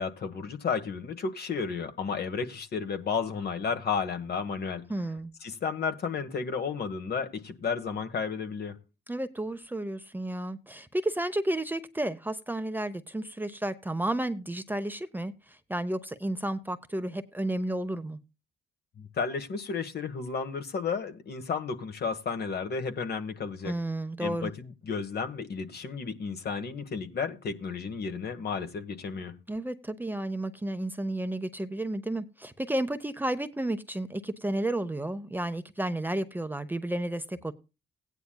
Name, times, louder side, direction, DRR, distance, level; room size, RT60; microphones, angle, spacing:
voice 1, 0.0-4.9 5.4-8.8 19.0-23.8 24.2-29.4, left 5 dB, 55° left, 1.4 m, -32 dB
voice 2, 4.9-5.3 9.1-15.3 15.7-18.2 23.6-24.5 29.5-37.5, right 1 dB, 10° right, 0.7 m, -32 dB
16.5 x 9.6 x 2.3 m
cardioid pair, 90°, 20 cm